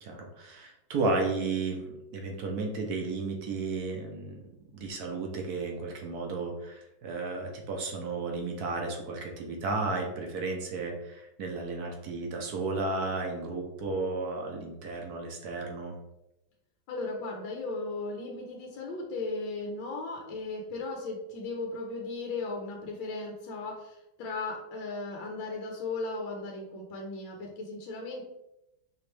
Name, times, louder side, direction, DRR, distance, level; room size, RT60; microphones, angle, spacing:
voice 1, 0.0-4.5 4.7-16.0, right 3 dB, 65° right, 2 dB, 1.1 m, -33 dB
voice 2, 16.9-28.3, left 3 dB, 75° left, 0 dB, 1.5 m, -36 dB
4.9 x 3.1 x 3.2 m, 0.89 s
omnidirectional pair, 2.1 m